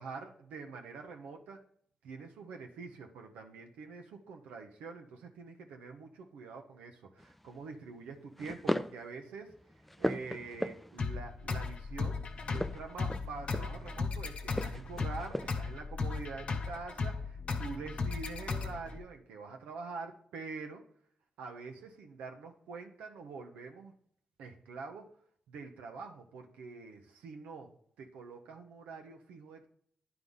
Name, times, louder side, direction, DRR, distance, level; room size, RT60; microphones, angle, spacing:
voice 1, 0.0-1.6 2.0-9.5 10.0-20.8 21.4-23.9 24.4-25.1 25.5-29.7, right 4 dB, 90° right, 3 dB, 0.7 m, -45 dB
sound 1, 7.2-7.5 8.4-9.0 9.5-11.1 12.4-13.9 14.5-15.7, left 1 dB, 5° left, 0.4 m, -37 dB
sound 2, 11.0-19.0, left 4 dB, 60° left, 0.9 m, -36 dB
9.6 x 3.5 x 5.4 m, 0.64 s
supercardioid pair, 55°, 2 cm